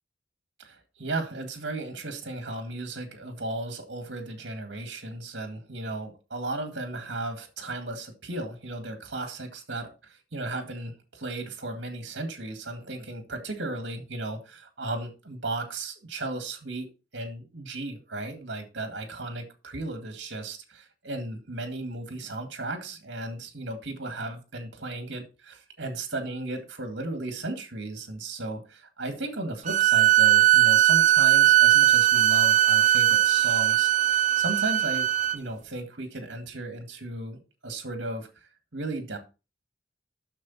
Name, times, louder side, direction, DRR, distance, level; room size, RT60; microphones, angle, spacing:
voice 1, 0.6-39.2, right 2 dB, 60° right, 6 dB, 2.0 m, -35 dB
sound 1, 29.7-35.4, right 13 dB, 40° right, 0.4 m, -19 dB
11.5 x 6.7 x 4.2 m, 0.30 s
head